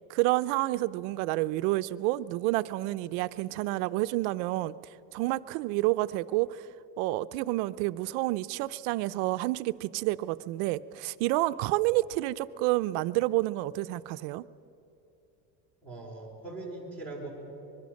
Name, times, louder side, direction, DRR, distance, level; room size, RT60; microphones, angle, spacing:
voice 1, 0.1-4.7 5.1-6.7 7.0-14.5, right 18 dB, 80° right, 14 dB, 0.7 m, -29 dB
voice 2, 15.8-17.3, right 2 dB, 5° left, -1 dB, 4.6 m, -40 dB
24.5 x 22.0 x 6.4 m, 2.8 s
cardioid pair, 155°, 39 cm